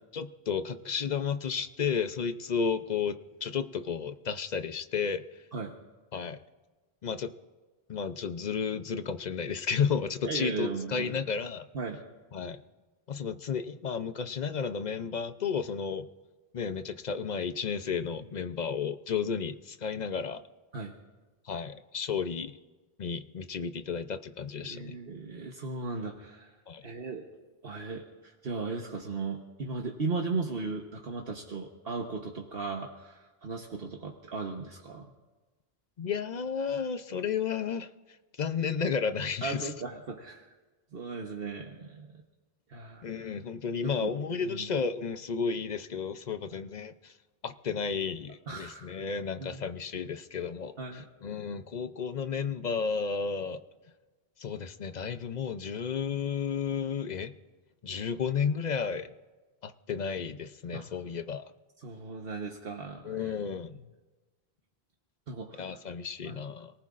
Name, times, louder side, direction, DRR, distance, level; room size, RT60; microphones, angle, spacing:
voice 1, 0.1-3.2 3.4-5.2 6.1-6.4 7.0-7.3 7.9-11.7 12.3-12.6 13.1-16.1 16.5-20.4 21.5-22.6 23.0-25.0 26.7-26.8 36.0-37.9 38.4-39.7 43.0-47.1 47.4-53.6 54.4-57.3 57.8-59.1 59.6-61.4 63.0-63.8 65.6-66.7, left 6 dB, 50° left, 10 dB, 0.7 m, -32 dB
voice 2, 10.2-11.2 11.7-12.0 20.7-20.9 24.6-26.5 26.8-27.3 27.6-35.1 39.4-40.5 40.9-42.2 42.7-43.3 43.8-44.1 44.4-44.7 46.5-46.6 48.5-49.0 49.4-49.6 50.8-51.1 60.7-60.9 61.8-63.3 63.7-63.8 65.3-65.8 66.2-66.4, right 4 dB, 70° right, 1 dB, 1.3 m, -37 dB
30.0 x 19.0 x 2.5 m, 1.2 s
omnidirectional pair, 1.0 m